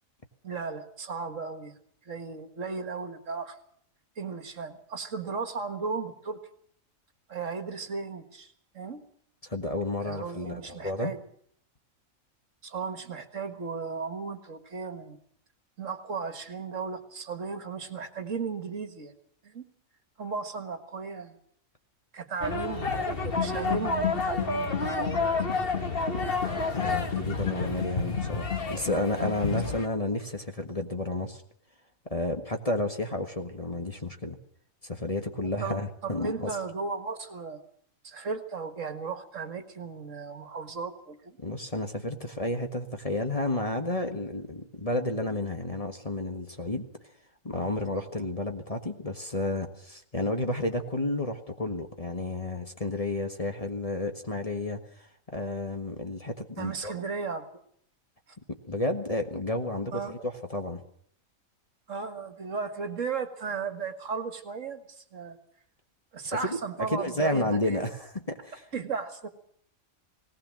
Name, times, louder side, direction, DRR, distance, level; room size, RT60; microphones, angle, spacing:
voice 1, 0.4-1.8 2.1-3.6 4.2-6.4 7.3-9.0 10.0-11.2 12.6-15.2 15.8-19.1 19.4-19.7 20.2-21.3 22.1-25.3 29.2-29.3 35.6-37.6 38.0-41.4 47.9-48.1 56.6-57.5 58.3-58.4 59.9-60.2 61.9-65.4 66.1-67.9 68.7-69.3, right 5 dB, 60° right, 9 dB, 2.0 m, -35 dB
voice 2, 9.4-11.1 26.7-31.4 32.1-34.4 34.8-36.6 41.4-46.9 47.4-54.8 55.3-56.9 58.5-60.8 66.2-68.6, left 2 dB, 25° left, 5 dB, 1.6 m, -31 dB
sound 1, 22.4-29.9, left 4 dB, 40° left, 1.8 m, -29 dB
19.0 x 19.0 x 7.5 m, 0.62 s
omnidirectional pair, 1.5 m